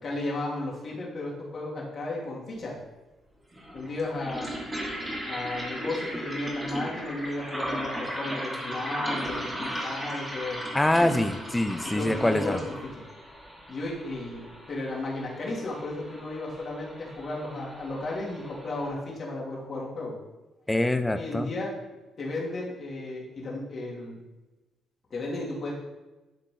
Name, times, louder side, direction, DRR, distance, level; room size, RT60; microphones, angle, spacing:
voice 1, 0.0-2.7 3.7-4.5 5.3-10.6 11.8-12.7 13.7-14.4 14.7-20.1 21.1-21.7 22.2-24.2 25.1-25.8, left 2 dB, 45° left, -4 dB, 2.7 m, -34 dB
sound 1, 2.5-2.6 3.5-18.9, equal, 15° right, 2.2 m, -36 dB
voice 2, 10.7-12.6 20.7-21.5, left 1 dB, 10° left, 9 dB, 0.6 m, -25 dB
11.5 x 3.9 x 3.9 m, 1.1 s
cardioid pair, 90°, 0 cm